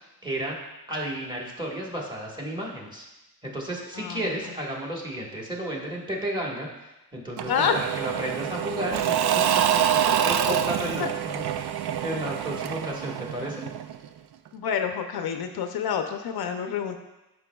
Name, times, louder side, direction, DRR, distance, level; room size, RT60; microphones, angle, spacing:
voice 1, 0.2-0.6 0.9-3.0 3.4-9.0 9.9-13.7, right 1 dB, 10° right, -3 dB, 1.4 m, -33 dB
voice 2, 4.0-4.3 7.5-7.7 11.0-11.1 14.5-17.0, left 7 dB, 70° left, 6 dB, 0.6 m, -28 dB
Engine / Mechanisms / Drill, 7.4-14.1, right 9 dB, 75° right, 0.5 m, -26 dB
11.0 x 5.2 x 2.3 m, 0.98 s
cardioid pair, 120°, 39 cm